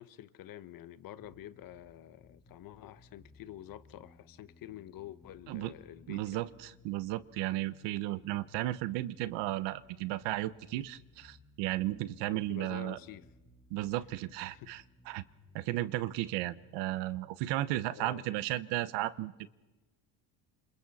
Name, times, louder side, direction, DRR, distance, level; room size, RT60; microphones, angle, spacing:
voice 1, 0.0-6.4 12.3-13.3 14.5-14.7 17.9-18.3, left 13 dB, 50° left, 1.1 m, -48 dB
sound 1, 1.2-17.2, left 1 dB, 5° left, 4.4 m, -62 dB
voice 2, 6.1-13.0 13.7-15.2 15.5-19.5, right 15 dB, 75° right, 1.1 m, -34 dB
29.0 x 27.0 x 4.2 m
cardioid pair, 120°, 43 cm